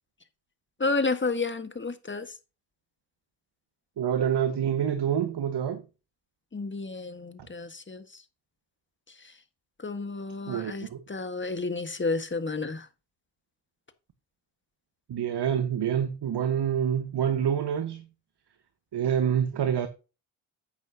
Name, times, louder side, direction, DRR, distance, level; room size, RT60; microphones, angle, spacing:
voice 1, 0.8-2.3 6.5-8.2 9.2-9.3 9.8-12.9, left 3 dB, 25° left, 1.5 m, -31 dB
voice 2, 4.0-5.8 10.5-11.0 15.1-18.0 18.9-19.9, right 9 dB, 55° right, 1.3 m, -27 dB
10.5 x 8.4 x 2.8 m
hypercardioid pair, 40°, 49 cm